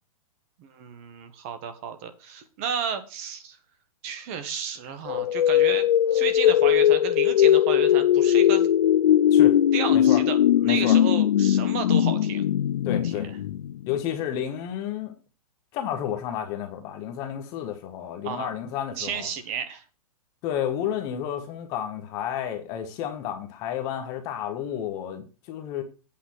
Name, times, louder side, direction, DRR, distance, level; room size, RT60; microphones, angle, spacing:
voice 1, 0.6-3.6 4.0-8.7 9.7-10.4 10.6-12.4 13.0-13.1 18.2-18.5 19.0-19.8, right 7 dB, 20° right, 1.0 m, -32 dB
sound 1, 5.1-14.0, left 11 dB, 85° left, 0.5 m, -20 dB
voice 2, 10.6-11.0 12.8-13.3 13.9-15.1 15.7-19.3 20.4-25.8, left 10 dB, 15° left, 1.0 m, -31 dB
8.5 x 5.0 x 7.7 m
hypercardioid pair, 180°, 19 cm